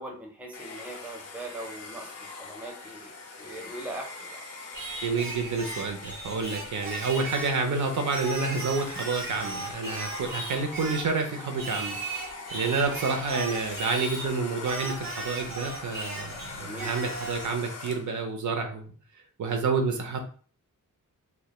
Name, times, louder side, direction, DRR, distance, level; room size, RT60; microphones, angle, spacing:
voice 1, 0.0-3.1 3.4-4.4 16.6-16.9, right 1 dB, 5° right, 1 dB, 0.4 m, -40 dB
Domestic sounds home sounds, 0.5-18.2, left 3 dB, 50° left, 0.5 m, -42 dB
Singing, 4.7-7.6 8.1-11.1 11.6-14.3 14.6-17.5, right 2 dB, 85° right, 0.9 m, -37 dB
voice 2, 5.0-18.9 19.4-20.2, right 4 dB, 60° right, 4 dB, 0.5 m, -29 dB
2.2 x 2.1 x 2.9 m, 0.41 s
wide cardioid pair, 155°, 33 cm